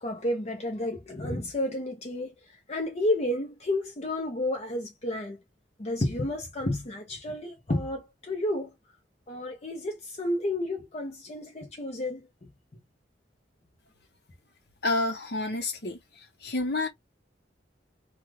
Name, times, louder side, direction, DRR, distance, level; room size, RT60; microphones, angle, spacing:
voice 1, 0.0-2.3 2.7-5.4 5.8-8.7 9.3-12.3, left 1 dB, 35° left, 0.7 m, -31 dB
voice 2, 14.8-16.0 16.4-16.9, left 2 dB, 65° left, 1.0 m, -28 dB
2.4 x 2.4 x 3.1 m
head